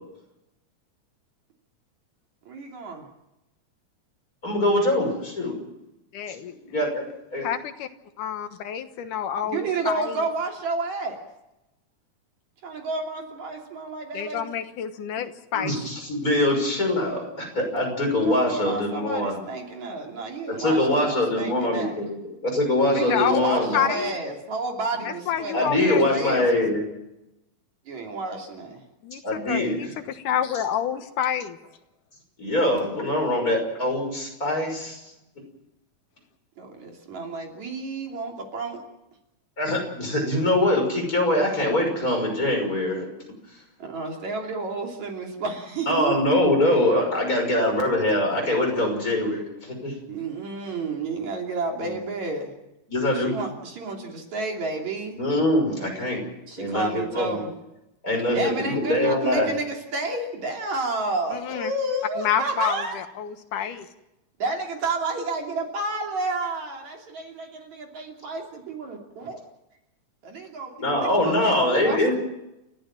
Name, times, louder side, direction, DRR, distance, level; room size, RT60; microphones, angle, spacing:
voice 1, 2.5-3.1 9.4-11.2 12.6-14.5 18.2-22.0 22.9-26.7 27.9-28.8 36.6-38.8 43.8-46.5 50.1-52.5 53.1-55.2 56.5-57.5 58.3-63.0 63.6-63.8 64.4-69.4 70.2-72.2, right 3 dB, 65° right, 1 dB, 4.3 m, -31 dB
voice 2, 4.4-5.6 6.6-7.0 7.3-7.5 15.5-19.4 20.6-23.9 25.5-26.8 29.2-29.8 32.4-35.0 39.6-43.1 45.9-49.9 51.8-51.9 52.9-53.3 55.2-56.2 56.6-57.4 58.0-59.5 70.8-72.2, left 1 dB, 25° left, 1 dB, 6.3 m, -23 dB
voice 3, 6.1-6.5 7.4-7.9 8.2-10.2 14.1-15.7 23.1-23.4 23.7-24.1 25.0-26.4 29.0-31.6 61.3-61.7 62.2-63.9, left 9 dB, 85° left, 8 dB, 2.9 m, -28 dB
29.5 x 14.5 x 7.5 m, 0.91 s
omnidirectional pair, 3.5 m